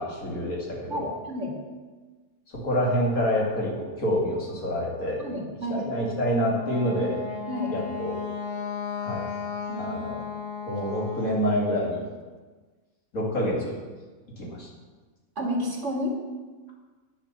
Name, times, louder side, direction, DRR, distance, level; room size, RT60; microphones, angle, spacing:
voice 1, 0.0-1.1 2.5-5.2 5.7-7.2 7.7-8.2 9.0-9.3 9.8-10.2 10.6-12.0 13.1-13.8 14.4-14.7, equal, 70° left, -3 dB, 2.8 m, -27 dB
voice 2, 0.9-1.5 5.2-5.8 7.5-7.7 9.7-10.1 15.4-16.2, equal, 50° right, -1 dB, 2.3 m, -30 dB
Wind instrument woodwind instrument, 6.5-11.4, left 6 dB, 50° left, 0.8 m, -35 dB
9.8 x 7.4 x 7.0 m, 1.3 s
omnidirectional pair, 1.6 m